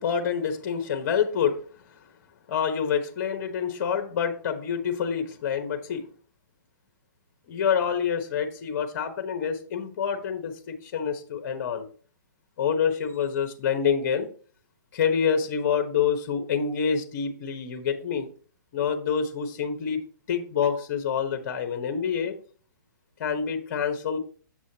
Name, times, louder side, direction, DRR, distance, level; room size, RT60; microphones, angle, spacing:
voice 1, 0.0-1.6 2.5-6.0 7.5-11.9 12.6-14.3 14.9-18.3 18.7-20.0 20.3-22.3 23.2-24.2, left 7 dB, 45° left, 5 dB, 1.1 m, -27 dB
7.5 x 6.2 x 2.9 m, 0.41 s
hypercardioid pair, 145°, 11 cm